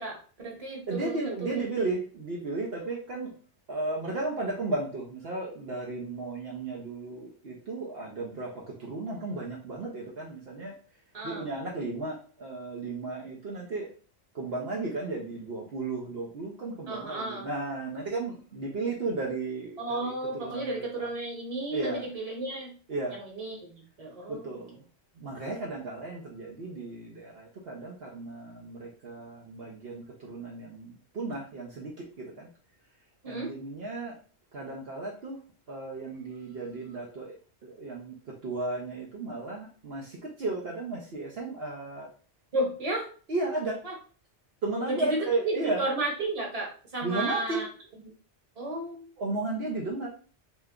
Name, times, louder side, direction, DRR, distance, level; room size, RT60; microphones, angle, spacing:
voice 1, 0.0-1.2 11.1-11.4 16.9-17.5 19.8-22.7 23.1-23.7 24.0-24.5 33.2-33.5 42.5-43.1 43.8-43.9 44.9-45.2 45.4-47.7 48.6-49.1, right 2 dB, 35° right, -1 dB, 1.2 m, -33 dB
voice 2, 0.9-3.3 3.7-10.7 11.2-13.9 14.3-21.1 21.7-22.1 22.9-23.2 24.3-24.8 25.2-32.5 33.2-34.2 34.5-35.4 35.7-37.4 37.6-42.1 43.3-43.8 44.6-45.9 47.0-47.6 49.2-50.1, right 3 dB, 60° right, -3 dB, 1.0 m, -34 dB
3.3 x 2.9 x 3.6 m, 0.40 s
omnidirectional pair, 1.2 m